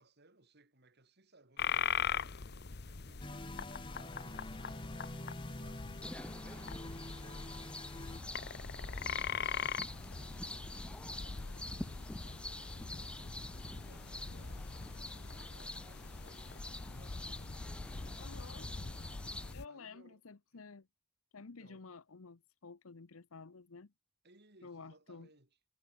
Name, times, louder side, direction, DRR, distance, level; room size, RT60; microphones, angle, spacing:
voice 1, 0.0-5.0 5.6-7.8 8.3-20.3 20.5-20.6 21.4-21.9 24.2-25.6, right 2 dB, 50° right, 4.1 m, -66 dB
sound 1, 1.6-19.7, left 6 dB, 50° left, 1.0 m, -42 dB
sound 2, 3.2-8.2, left 1 dB, 25° left, 2.0 m, -47 dB
sound 3, 6.0-19.5, left 1 dB, 5° left, 0.8 m, -48 dB
voice 2, 18.2-18.7 19.5-20.8 21.3-23.9 24.6-25.3, left 4 dB, 80° left, 0.9 m, -52 dB
head